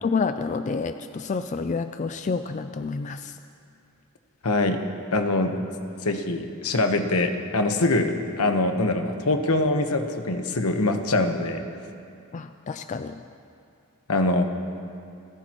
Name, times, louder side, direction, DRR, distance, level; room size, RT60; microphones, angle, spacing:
voice 1, 0.0-3.3 12.3-13.2, left 4 dB, 35° left, 9 dB, 0.3 m, -29 dB
voice 2, 4.4-4.8 5.1-5.6 6.0-11.6 14.1-14.4, left 2 dB, 80° left, 6 dB, 1.2 m, -23 dB
29.0 x 14.0 x 3.0 m, 2.5 s
head